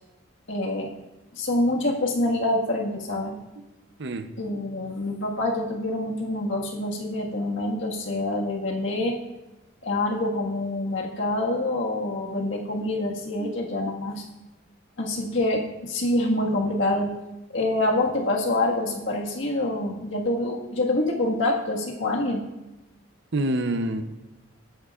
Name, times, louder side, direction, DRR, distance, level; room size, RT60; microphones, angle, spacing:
voice 1, 0.5-0.9 1.3-3.3 4.4-9.1 9.8-14.2 15.0-17.1 17.5-22.4, left 1 dB, 60° left, -1 dB, 1.7 m, -26 dB
voice 2, 23.3-24.0, right 1 dB, 55° right, 9 dB, 0.7 m, -26 dB
18.0 x 9.4 x 2.4 m, 1.0 s
head